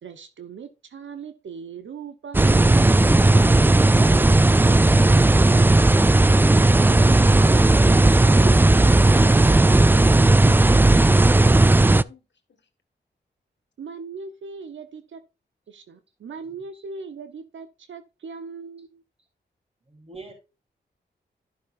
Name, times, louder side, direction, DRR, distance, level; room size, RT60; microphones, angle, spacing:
voice 1, 0.0-3.0 6.7-9.5 13.8-15.2 15.7-19.0, right 5 dB, 80° right, 1.0 m, -39 dB
sound 1, 2.3-12.0, right 2 dB, 10° right, 0.3 m, -15 dB
voice 2, 2.6-5.1, left 6 dB, 70° left, 2.0 m, -42 dB
voice 3, 19.9-20.3, right 3 dB, 30° right, 3.5 m, -42 dB
11.5 x 6.5 x 2.5 m
cardioid pair, 55°, 19 cm